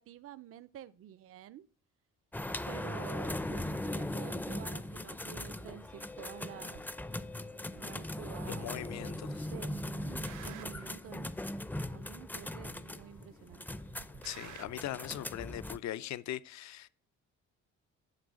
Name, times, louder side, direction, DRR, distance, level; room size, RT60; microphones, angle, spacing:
voice 1, 0.0-1.7 2.7-6.8 7.8-11.4 11.9-13.8, right 11 dB, 50° right, 0.5 m, -49 dB
sound 1, 2.3-15.8, left 1 dB, 5° left, 0.4 m, -39 dB
sound 2, 2.5-14.3, left 6 dB, 90° left, 2.0 m, -62 dB
sound 3, 6.7-6.9 7.7-7.8 8.7-9.2 9.5-11.0 11.7-11.8 12.7-13.2 13.5-14.7, right 11 dB, 80° right, 0.9 m, -51 dB
voice 2, 8.5-9.5 14.2-16.9, left 13 dB, 65° left, 0.5 m, -40 dB
10.5 x 3.9 x 6.2 m
cardioid pair, 90°, 30 cm